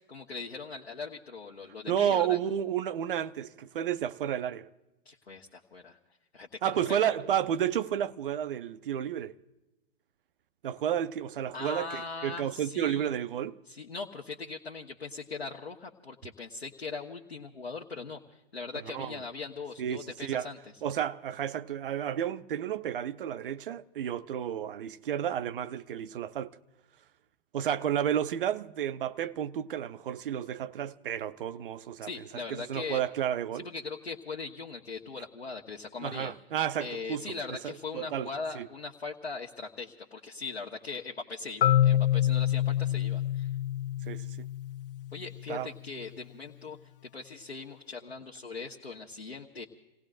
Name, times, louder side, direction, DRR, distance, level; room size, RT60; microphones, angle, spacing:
voice 1, 0.0-2.4 5.0-6.0 6.3-7.2 11.5-13.1 13.7-20.6 32.0-33.0 33.5-36.3 36.8-43.5 45.1-46.8 47.1-49.6, left 4 dB, 90° left, 1.3 m, -40 dB
voice 2, 1.9-4.7 6.6-9.3 10.6-13.6 18.8-19.2 19.8-20.5 20.8-26.6 27.5-33.7 36.0-37.2 37.5-38.3 38.5-38.7 44.1-44.5 45.5-45.7, right 9 dB, 60° right, 0.7 m, -31 dB
Marimba xylophone, 41.6-45.5, left 12 dB, 65° left, 0.4 m, -27 dB
29.0 x 18.0 x 2.5 m
hypercardioid pair, 120°, 31 cm